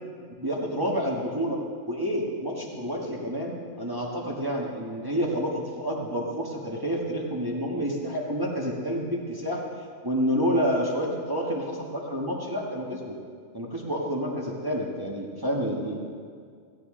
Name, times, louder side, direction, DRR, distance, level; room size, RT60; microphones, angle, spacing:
voice 1, 0.4-1.6 1.9-9.6 10.0-13.1 13.5-16.0, equal, 15° right, -2 dB, 1.4 m, -29 dB
17.0 x 15.0 x 3.8 m, 2.1 s
omnidirectional pair, 1.4 m